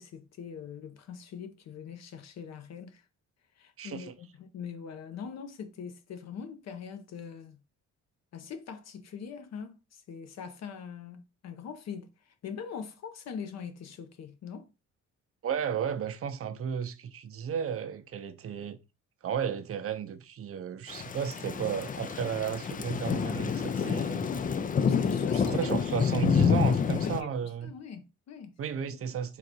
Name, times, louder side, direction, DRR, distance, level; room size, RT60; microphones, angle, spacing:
voice 1, 0.0-3.0 3.6-7.6 8.3-14.7 24.9-25.7 27.0-28.6 28.9-29.0, left 7 dB, 60° left, 0.8 m, -42 dB
voice 2, 3.8-4.1 15.4-18.8 19.2-24.3 25.3-27.7 28.6-29.4, right 7 dB, 50° right, 0.6 m, -33 dB
Thunder / Rain, 20.9-27.2, left 6 dB, 30° left, 0.4 m, -28 dB
3.9 x 2.5 x 4.4 m
cardioid pair, 90°, 30 cm